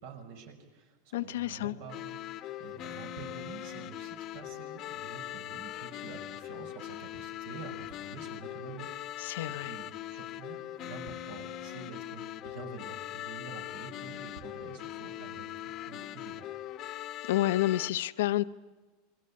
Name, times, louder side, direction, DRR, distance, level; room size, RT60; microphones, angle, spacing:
voice 1, 0.0-16.5, right 5 dB, 70° right, 5.4 m, -48 dB
voice 2, 1.1-1.8 9.2-9.8 17.3-18.4, left 15 dB, 80° left, 0.8 m, -29 dB
sound 1, 1.9-17.9, left 13 dB, 45° left, 1.2 m, -41 dB
28.5 x 22.5 x 8.5 m
supercardioid pair, 130°, 0 cm